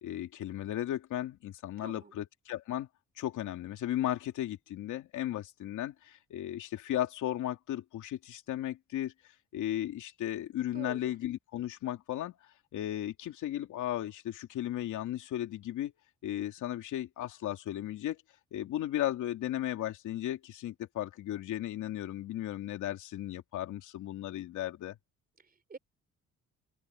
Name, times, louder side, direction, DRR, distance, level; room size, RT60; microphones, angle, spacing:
voice 1, 0.0-2.9 3.2-9.1 9.5-12.3 12.7-15.9 16.2-18.2 18.5-25.0, left 12 dB, 80° left, 2.8 m, -35 dB
voice 2, 1.8-2.2 10.7-11.1 25.4-25.8, right 4 dB, 30° right, 3.2 m, -47 dB
open air
cardioid pair, 90°, 30 cm